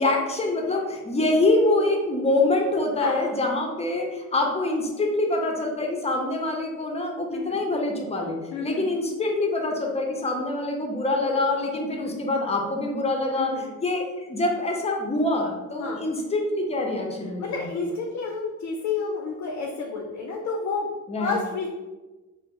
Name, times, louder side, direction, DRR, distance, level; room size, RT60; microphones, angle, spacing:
voice 1, 0.0-13.5 13.8-17.6 21.1-21.5, left 2 dB, 20° left, 1 dB, 0.6 m, -25 dB
voice 2, 8.5-8.9 11.9-12.2 13.4-13.7 15.8-16.0 17.4-20.9 21.2-21.7, left 4 dB, 65° left, 1 dB, 0.5 m, -30 dB
2.9 x 2.0 x 3.5 m, 1.2 s
cardioid pair, 90°, 30 cm